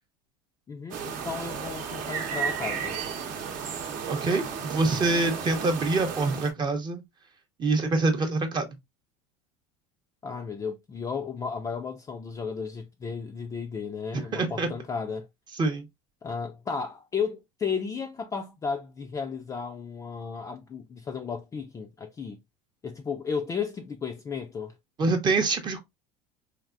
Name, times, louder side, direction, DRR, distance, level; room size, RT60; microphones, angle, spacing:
voice 1, 0.7-3.0 10.2-15.3 16.2-22.4 22.8-24.7, left 5 dB, 20° left, 0.4 m, -34 dB
sound 1, 0.9-6.5, right 6 dB, 55° right, 0.8 m, -33 dB
voice 2, 4.1-7.0 7.6-8.7 14.1-14.7 15.5-15.9 25.0-25.8, right 3 dB, 30° right, 0.7 m, -25 dB
3.4 x 2.5 x 2.4 m
supercardioid pair, 120°, 16 cm